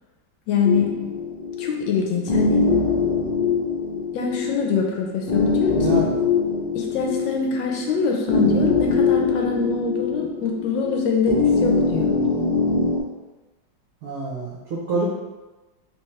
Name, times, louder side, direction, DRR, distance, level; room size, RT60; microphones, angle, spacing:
voice 1, 0.5-0.9 1.6-2.7 4.1-6.1 6.7-12.1, left 4 dB, 90° left, 1 dB, 1.4 m, -24 dB
sound 1, 0.6-13.0, left 5 dB, 55° left, 0.6 m, -23 dB
voice 2, 5.7-6.1 14.0-15.2, right 2 dB, 65° right, -5 dB, 0.8 m, -26 dB
3.4 x 3.1 x 3.1 m, 1.2 s
omnidirectional pair, 2.0 m